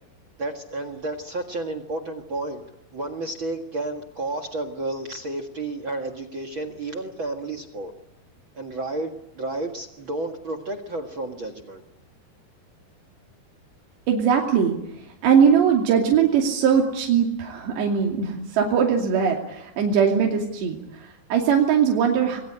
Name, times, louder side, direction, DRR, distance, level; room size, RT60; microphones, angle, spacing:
voice 1, 0.4-2.6 2.9-7.9 8.5-11.8, right 2 dB, 45° right, 10 dB, 1.6 m, -31 dB
voice 2, 14.1-14.8 15.2-22.4, right 7 dB, 85° right, 0 dB, 4.8 m, -20 dB
26.5 x 21.5 x 9.8 m, 0.85 s
omnidirectional pair, 4.9 m